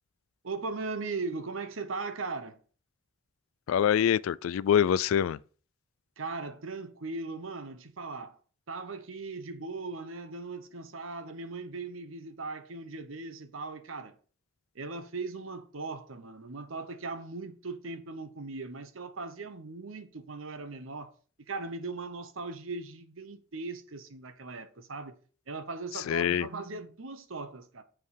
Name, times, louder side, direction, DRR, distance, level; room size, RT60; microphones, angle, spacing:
voice 1, 0.4-2.6 6.2-8.4 8.7-14.2 14.7-21.1 21.5-25.2 25.5-27.8, right 3 dB, 75° right, 1.0 m, -39 dB
voice 2, 3.7-5.4 26.1-26.5, left 9 dB, 85° left, 0.3 m, -25 dB
7.4 x 3.7 x 6.4 m
head